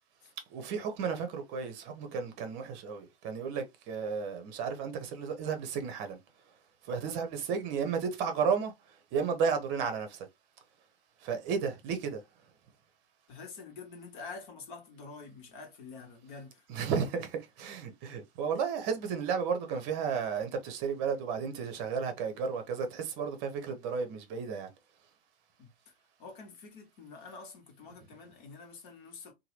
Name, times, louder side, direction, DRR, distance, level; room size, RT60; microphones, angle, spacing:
voice 1, 0.5-6.2 6.8-10.3 11.2-12.2 16.7-24.7, right 6 dB, 30° right, 0.8 m, -33 dB
voice 2, 13.3-16.6 25.6-25.7 26.2-29.3, left 4 dB, 50° left, 1.2 m, -47 dB
2.8 x 2.2 x 3.2 m
figure-of-eight pair, 100°, 33 cm